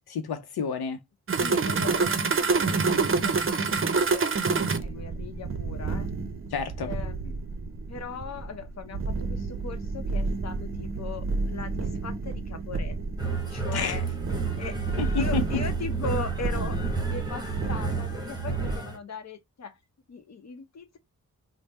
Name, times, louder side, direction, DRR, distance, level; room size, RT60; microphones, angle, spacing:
voice 1, 0.1-1.0 6.5-6.9 13.7-14.0 15.0-15.4, left 5 dB, 85° left, 0.6 m, -29 dB
sound 1, 1.3-18.8, right 4 dB, 35° right, 0.6 m, -29 dB
voice 2, 1.4-4.4 4.8-6.1 6.8-7.4 7.9-13.0 13.2-14.1 14.6-14.8 15.1-19.8 20.1-21.0, left 4 dB, 45° left, 0.8 m, -39 dB
sound 2, 13.2-19.0, right 5 dB, 10° right, 1.0 m, -31 dB
3.4 x 2.1 x 4.0 m
wide cardioid pair, 85°, 37 cm